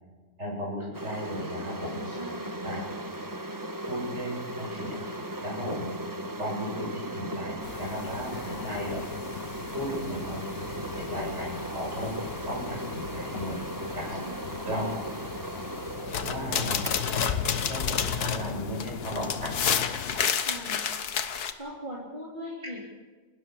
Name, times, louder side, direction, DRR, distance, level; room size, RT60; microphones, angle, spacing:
voice 1, 0.4-2.1 2.6-2.8 3.9-5.1 5.4-5.9 6.4-9.0 9.7-13.6 13.9-14.2 14.6-14.9 16.2-17.3 17.7-19.6 20.0-20.2, equal, 45° right, -3 dB, 7.8 m, -35 dB
sound 1, 0.9-19.4, right 1 dB, 15° right, 1.1 m, -38 dB
voice 2, 2.0-2.8 8.2-8.7 14.2-14.6 19.2-19.5 20.3-22.9, equal, 30° right, -5 dB, 3.7 m, -42 dB
sound 2, 7.6-20.2, left 8 dB, 50° left, 0.8 m, -39 dB
sound 3, 16.1-21.5, left 7 dB, 75° left, 1.7 m, -29 dB
29.5 x 13.0 x 7.2 m, 1.5 s
omnidirectional pair, 1.7 m